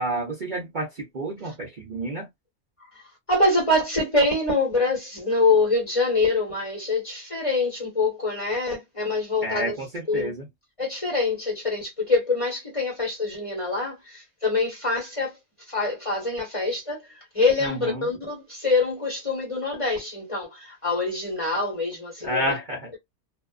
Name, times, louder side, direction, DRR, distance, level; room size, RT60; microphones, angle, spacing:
voice 1, 0.0-2.3 9.4-10.5 17.6-18.1 22.2-22.9, right 1 dB, 45° right, 0.8 m, -30 dB
voice 2, 3.3-9.7 10.1-10.3 10.8-15.3 15.7-17.1 17.3-22.6, left 3 dB, 25° left, 1.3 m, -25 dB
2.6 x 2.3 x 2.3 m
omnidirectional pair, 1.4 m